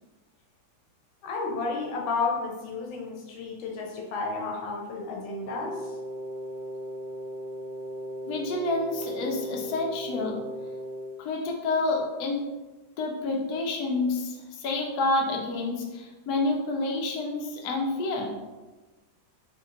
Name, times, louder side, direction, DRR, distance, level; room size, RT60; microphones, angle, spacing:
voice 1, 1.2-5.9, left 4 dB, 85° left, 0 dB, 1.5 m, -32 dB
Wind instrument woodwind instrument, 5.4-11.2, right 1 dB, 65° right, 1.0 m, -37 dB
voice 2, 8.3-10.4 11.2-12.4 13.0-18.3, left 2 dB, 65° left, 0 dB, 1.1 m, -28 dB
4.4 x 2.6 x 3.7 m, 1.2 s
omnidirectional pair, 2.1 m